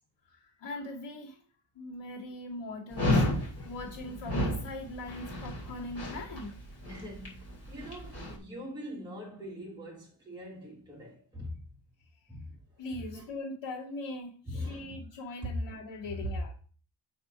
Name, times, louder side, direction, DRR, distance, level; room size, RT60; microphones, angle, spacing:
voice 1, 0.2-1.4 1.7-6.5 12.8-16.5, left 2 dB, 80° left, 2.3 m, -41 dB
Dog, 2.9-8.3, left 1 dB, 30° left, 3.3 m, -32 dB
voice 2, 6.8-11.6 12.3-12.6 13.1-13.2 14.5-14.9 15.4-15.5, equal, 10° right, 1.6 m, -42 dB
7.7 x 4.4 x 4.8 m
wide cardioid pair, 160°, 44 cm